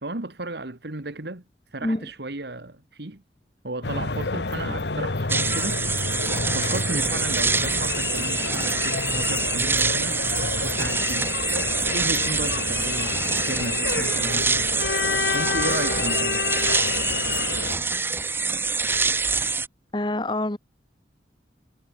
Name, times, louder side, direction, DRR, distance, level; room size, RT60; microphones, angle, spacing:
voice 1, 0.0-1.4 1.7-3.2 3.6-10.2 10.6-16.5, right 2 dB, 65° right, 1.8 m, -34 dB
sound 1, 3.8-17.8, left 4 dB, 70° left, 1.3 m, -28 dB
sound 2, 5.3-19.7, right 4 dB, 10° right, 0.5 m, -26 dB
voice 2, 19.9-20.6, left 1 dB, 25° left, 1.2 m, -26 dB
head